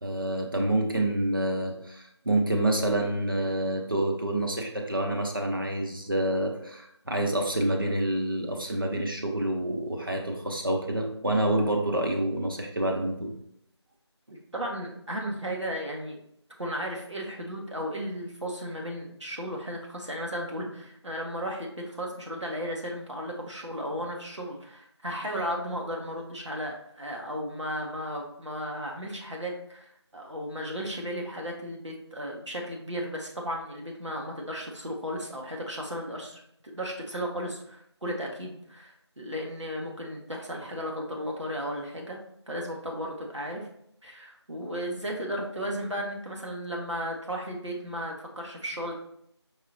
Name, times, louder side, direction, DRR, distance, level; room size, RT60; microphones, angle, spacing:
voice 1, 0.0-13.3, right 1 dB, 50° right, 1 dB, 0.8 m, -27 dB
voice 2, 14.5-16.2 16.6-36.4 36.7-42.2 42.5-43.7 44.0-48.9, equal, 90° right, -1 dB, 1.2 m, -35 dB
4.8 x 3.8 x 2.8 m, 0.73 s
figure-of-eight pair, 170°, 15 cm